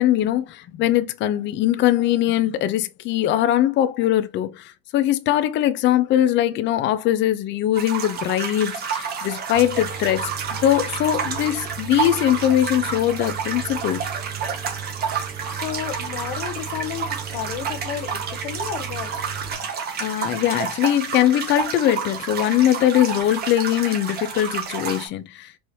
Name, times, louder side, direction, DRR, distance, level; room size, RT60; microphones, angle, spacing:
voice 1, 0.0-10.3 10.6-14.0 20.0-25.6, left 12 dB, 40° left, 0.6 m, -21 dB
sound 1, 7.7-25.1, right 6 dB, 30° right, 1.2 m, -30 dB
Engine, 9.5-19.5, right 8 dB, 70° right, 1.5 m, -37 dB
voice 2, 14.7-19.7, left 10 dB, 75° left, 1.0 m, -33 dB
4.6 x 2.8 x 3.1 m
supercardioid pair, 125°, 30 cm